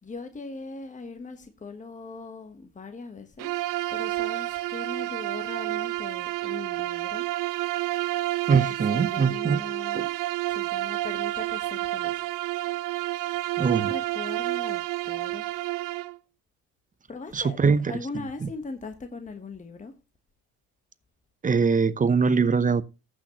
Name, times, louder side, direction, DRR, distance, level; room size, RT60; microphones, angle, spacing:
voice 1, 0.0-3.6 3.9-7.3 8.9-10.1 10.5-12.3 13.7-15.5 17.1-20.0, left 3 dB, 20° left, 1.2 m, -40 dB
Bowed string instrument, 3.4-16.2, right 17 dB, 65° right, 0.6 m, -29 dB
voice 2, 8.5-9.6 9.9-10.1 13.6-13.9 17.3-17.9 21.4-22.8, right 5 dB, 25° right, 0.7 m, -22 dB
14.5 x 6.4 x 2.9 m
supercardioid pair, 80°, 35 cm